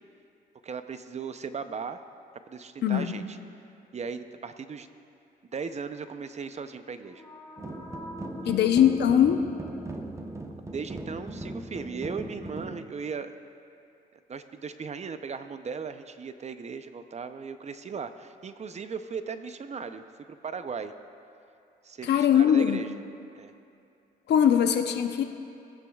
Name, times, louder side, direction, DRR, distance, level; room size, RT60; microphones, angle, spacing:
voice 1, 0.6-2.0 2.5-3.4 3.9-4.9 5.5-7.3 8.4-8.6 10.7-13.4 14.3-20.9 21.8-23.0 23.3-23.5, right 5 dB, 40° right, 10 dB, 0.6 m, -37 dB
voice 2, 2.8-3.1 8.5-9.4 22.0-22.9 24.3-25.2, left 9 dB, 70° left, 7 dB, 0.8 m, -21 dB
sound 1, 6.9-10.7, left 1 dB, 15° left, 2.0 m, -48 dB
sound 2, 7.6-12.8, right 1 dB, 15° right, 0.9 m, -38 dB
19.5 x 9.7 x 2.4 m, 2.6 s
supercardioid pair, 70°, 18 cm